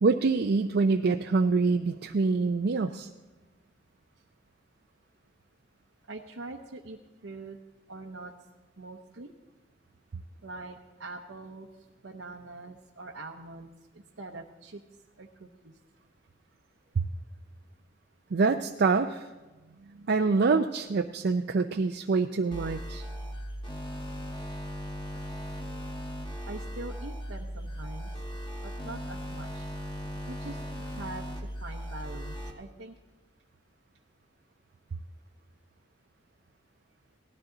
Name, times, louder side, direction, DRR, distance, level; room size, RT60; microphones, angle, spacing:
voice 1, 0.0-3.1 17.0-17.1 18.3-19.3 20.0-23.0, right 4 dB, 55° right, 5 dB, 0.4 m, -25 dB
voice 2, 6.1-7.0 7.2-7.6 7.9-8.3 8.8-9.3 10.4-11.7 12.0-14.8 15.2-15.8 26.5-28.1 28.6-29.7 30.3-31.3 31.6-33.0, right 2 dB, 80° right, -1 dB, 0.8 m, -43 dB
sound 1, 22.5-32.5, equal, 25° left, 1.5 m, -38 dB
18.0 x 13.0 x 3.9 m, 1.2 s
head